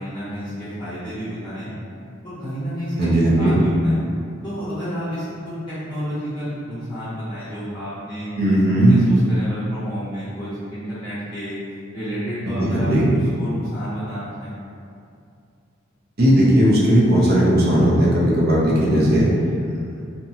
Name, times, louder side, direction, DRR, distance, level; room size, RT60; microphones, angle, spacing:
voice 1, 0.0-1.7 2.2-4.0 4.4-8.3 8.7-11.6 11.9-14.5, equal, 20° left, -13 dB, 0.6 m, -30 dB
voice 2, 3.0-3.6 8.4-9.0 12.5-13.1 16.2-19.3, right 1 dB, 50° right, -6 dB, 0.6 m, -16 dB
2.8 x 2.2 x 2.7 m, 2.5 s
head